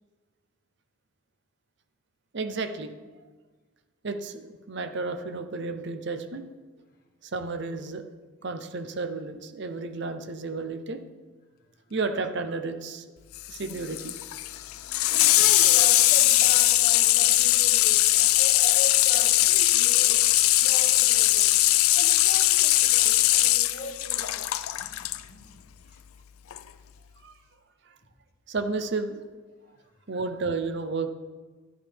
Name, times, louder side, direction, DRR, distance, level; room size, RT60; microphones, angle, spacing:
voice 1, 2.3-2.9 4.0-6.4 7.2-8.0 8.4-11.0 11.9-13.0 13.5-14.2 27.2-27.3 27.9-28.0 28.5-29.2 30.1-31.1, right 3 dB, 55° right, 8 dB, 0.7 m, -32 dB
Water tap faucet / Sink (filling or washing), 13.3-25.2 26.5-26.6, left 16 dB, 85° left, 0.4 m, -21 dB
voice 2, 15.3-20.2 20.6-21.5 21.9-25.5, left 1 dB, 45° left, 2 dB, 1.4 m, -40 dB
12.0 x 11.0 x 3.5 m, 1.3 s
head